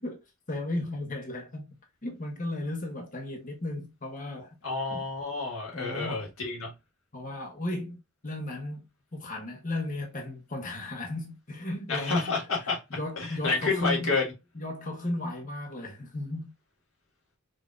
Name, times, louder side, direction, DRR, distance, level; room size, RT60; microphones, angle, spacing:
voice 1, 0.5-1.7 2.0-4.6 4.9-5.0 5.7-6.3 7.1-8.9 9.1-12.4 12.9-14.2 14.5-16.5, left 1 dB, 40° left, 1.0 m, -35 dB
voice 2, 4.6-6.7 11.9-12.8 13.2-14.2, left 4 dB, 70° left, 1.7 m, -29 dB
5.1 x 2.7 x 2.4 m
head